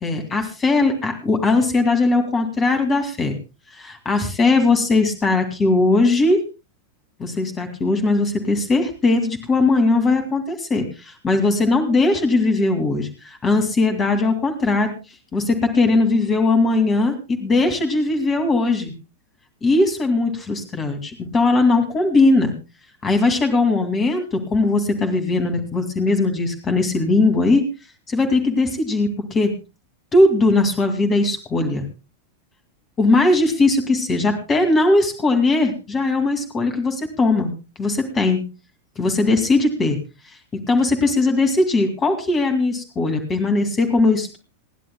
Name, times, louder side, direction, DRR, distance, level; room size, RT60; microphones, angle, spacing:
voice 1, 0.0-3.4 3.7-6.4 7.2-14.9 15.3-18.9 19.6-22.5 23.0-27.6 28.1-29.5 30.1-31.9 33.0-37.5 37.8-38.4 39.0-40.0 40.3-40.4 40.7-44.4, left 2 dB, 20° left, 6 dB, 2.4 m, -19 dB
28.0 x 11.0 x 2.2 m, 0.29 s
figure-of-eight pair, 90°, 0 cm